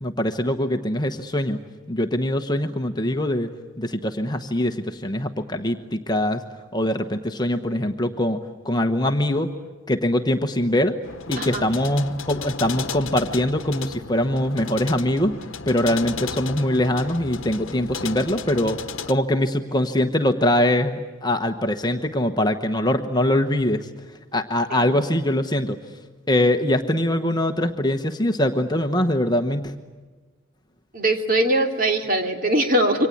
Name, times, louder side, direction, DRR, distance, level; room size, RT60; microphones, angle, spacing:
voice 1, 0.0-1.6 1.9-3.5 3.8-6.4 6.7-9.5 9.9-11.0 11.3-15.4 15.7-23.9 24.3-25.8 26.3-29.7, left 1 dB, 20° left, 6 dB, 1.1 m, -23 dB
sound 1, 11.0-19.1, left 5 dB, 65° left, 1.1 m, -34 dB
voice 2, 30.9-33.1, right 1 dB, 40° right, 4 dB, 2.9 m, -21 dB
27.5 x 25.0 x 8.6 m, 1.3 s
head